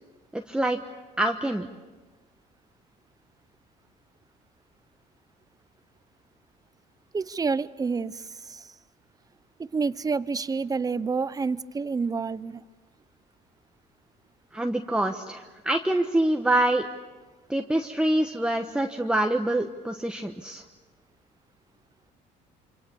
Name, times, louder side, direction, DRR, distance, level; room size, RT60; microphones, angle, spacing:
voice 1, 0.3-0.8 1.2-1.7 14.5-16.8 17.5-20.6, right 1 dB, 5° right, 4 dB, 1.2 m, -25 dB
voice 2, 7.1-8.7 9.6-12.6, right 4 dB, 20° right, 16 dB, 0.8 m, -29 dB
27.0 x 26.0 x 7.0 m, 1.3 s
cardioid pair, 110°, 17 cm